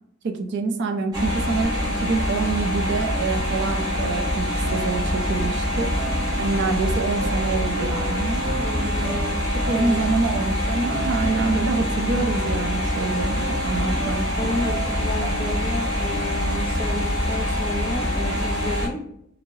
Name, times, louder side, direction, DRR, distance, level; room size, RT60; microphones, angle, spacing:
voice 1, 0.2-5.9 6.4-8.4 9.7-14.6, right 3 dB, 55° right, 5 dB, 0.4 m, -26 dB
sound 1, 1.1-18.9, equal, 20° right, 0.9 m, -25 dB
sound 2, 3.3-5.5 5.9-15.7, right 2 dB, 90° right, 0.7 m, -36 dB
voice 2, 8.6-9.4 9.7-10.1 14.4-19.0, left 2 dB, 25° left, 2 dB, 0.5 m, -32 dB
3.0 x 2.6 x 2.6 m, 0.73 s
head